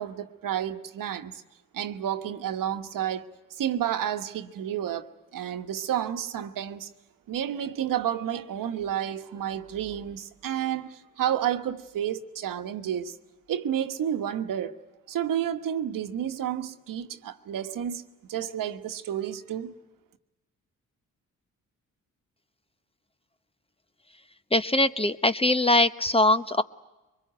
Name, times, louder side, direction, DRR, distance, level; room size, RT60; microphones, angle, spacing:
voice 1, 0.0-1.4 1.7-3.3 3.6-6.9 7.3-13.2 13.5-14.8 15.1-19.8, right 10 dB, 70° right, 1.3 m, -31 dB
voice 2, 24.5-26.6, left 2 dB, 15° left, 0.9 m, -22 dB
23.5 x 21.5 x 9.2 m
supercardioid pair, 60°, 34 cm